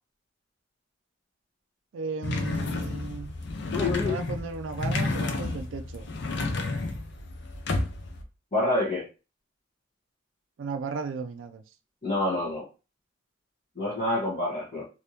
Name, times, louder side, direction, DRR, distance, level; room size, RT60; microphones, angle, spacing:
voice 1, 1.9-3.3 4.0-6.1 10.6-11.6, right 5 dB, 75° right, 0.4 m, -35 dB
sound 1, 2.2-8.2, left 2 dB, 65° left, 0.6 m, -31 dB
voice 2, 3.7-4.2 8.5-9.1 12.0-12.7 13.7-14.9, left 2 dB, 40° left, 1.2 m, -27 dB
3.4 x 2.7 x 2.8 m
head